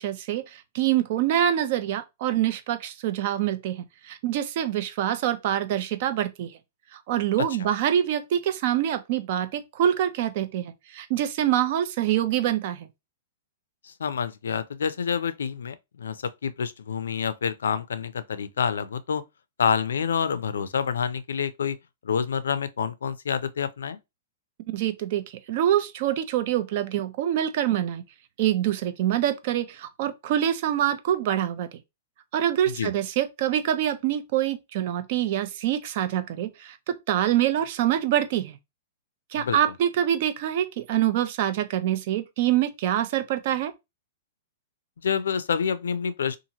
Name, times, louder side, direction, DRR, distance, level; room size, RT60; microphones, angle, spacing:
voice 1, 0.0-6.5 6.9-12.9 24.7-28.0 28.4-31.8 32.3-38.6 39.3-43.7, right 11 dB, 50° right, 0.5 m, -25 dB
voice 2, 13.8-19.2 19.6-21.8 22.0-24.0 32.7-32.9 39.3-39.6 45.0-46.4, left 7 dB, 90° left, 0.4 m, -28 dB
2.8 x 2.5 x 2.8 m
hypercardioid pair, 140°, 0 cm